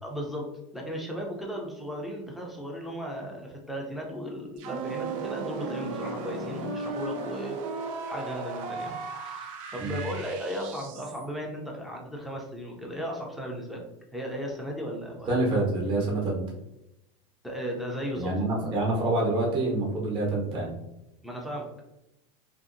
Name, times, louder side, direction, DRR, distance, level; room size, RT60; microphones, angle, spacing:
voice 1, 0.0-13.8 14.1-15.7 17.4-18.3 21.2-21.7, equal, ahead, -1 dB, 0.3 m, -36 dB
sound 1, 4.6-11.3, right 3 dB, 75° right, 0.5 m, -36 dB
voice 2, 9.8-10.1 15.3-16.4 18.2-20.7, right 2 dB, 30° right, -3 dB, 0.7 m, -27 dB
2.8 x 2.6 x 2.5 m, 0.89 s
supercardioid pair, 165°, 17 cm